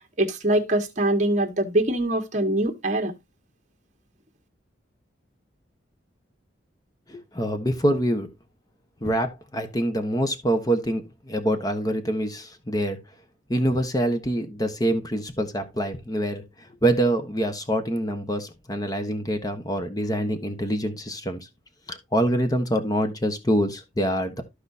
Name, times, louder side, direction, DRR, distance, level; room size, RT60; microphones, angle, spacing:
voice 1, 0.2-3.1, right 1 dB, 40° right, 1.4 m, -23 dB
voice 2, 7.1-8.3 9.0-13.0 13.5-16.4 16.8-21.5 21.9-24.4, right 1 dB, 20° left, 1.1 m, -25 dB
14.0 x 4.9 x 2.7 m
head